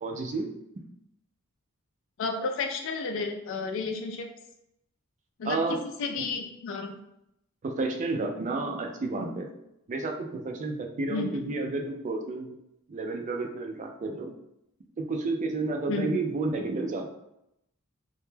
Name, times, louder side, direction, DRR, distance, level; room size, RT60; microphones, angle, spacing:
voice 1, 0.0-0.5 0.8-0.9 5.4-5.8 7.6-9.5 9.9-12.5 12.9-14.3 15.0-17.1, right 3 dB, 35° right, 3 dB, 0.3 m, -31 dB
voice 2, 2.2-4.3 5.4-6.9 11.1-11.3 15.9-16.2, left 4 dB, 60° left, 4 dB, 0.3 m, -32 dB
2.2 x 2.1 x 3.1 m, 0.81 s
head